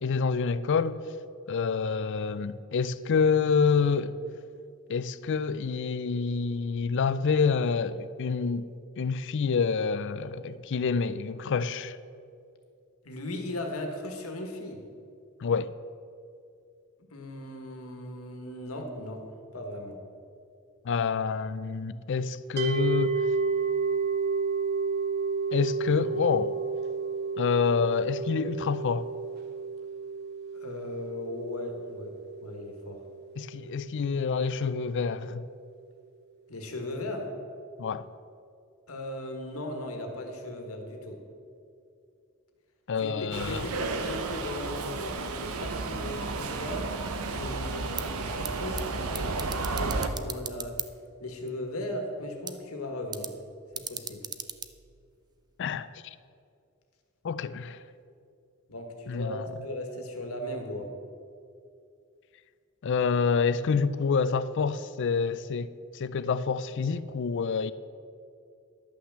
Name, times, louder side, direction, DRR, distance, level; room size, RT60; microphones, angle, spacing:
voice 1, 0.0-1.0 1.5-4.2 4.9-8.7 9.0-12.0 15.4-15.7 20.8-23.3 25.5-26.6 27.4-29.1 33.4-35.4 37.8-38.0 42.9-43.7 55.6-56.2 57.2-57.8 59.1-59.4 62.8-67.7, left 5 dB, 60° left, 0.4 m, -27 dB
voice 2, 13.0-14.8 17.1-19.2 19.5-20.0 30.5-32.1 32.4-33.0 36.5-37.3 38.9-41.2 43.0-47.0 47.2-50.8 51.2-53.3 53.7-54.2 58.7-60.9, left 1 dB, 80° left, 1.6 m, -37 dB
sound 1, 22.6-33.7, right 5 dB, 50° right, 1.1 m, -31 dB
Subway metro underground, 43.3-50.1, right 3 dB, 80° right, 0.8 m, -32 dB
sound 2, 47.8-55.6, right 7 dB, 20° right, 0.4 m, -41 dB
11.5 x 5.8 x 7.3 m
head